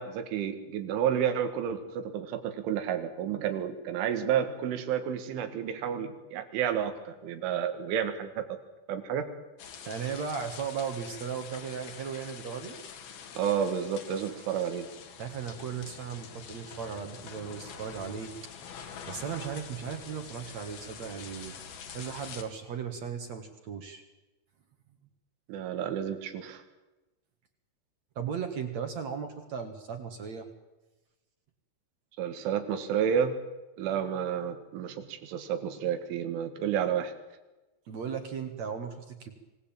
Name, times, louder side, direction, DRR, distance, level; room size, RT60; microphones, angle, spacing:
voice 1, 0.0-8.6 8.9-9.3 13.4-14.9 25.5-26.6 32.2-33.4 33.8-37.1, right 8 dB, 90° right, 9 dB, 4.4 m, -30 dB
sound 1, 9.6-22.4, left 7 dB, 60° left, 3.6 m, -46 dB
voice 2, 9.8-12.7 15.2-18.3 19.1-21.5 21.9-24.0 28.2-30.5 37.9-39.3, right 7 dB, 55° right, 7 dB, 2.0 m, -36 dB
25.5 x 18.0 x 8.8 m, 1.1 s
omnidirectional pair, 5.4 m